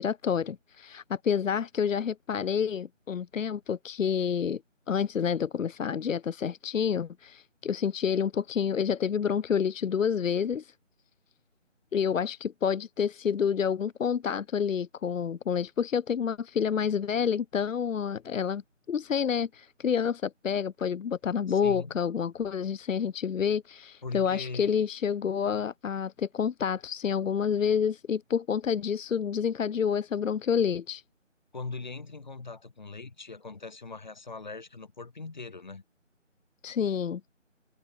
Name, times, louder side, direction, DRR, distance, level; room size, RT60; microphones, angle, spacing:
voice 1, 0.0-4.6 4.9-10.7 11.9-18.6 18.9-31.0 36.6-37.2, left 7 dB, 85° left, 0.5 m, -28 dB
voice 2, 21.5-22.0 24.0-24.7 31.5-35.8, left 3 dB, 35° left, 7.2 m, -40 dB
figure-of-eight pair, 165°, 38 cm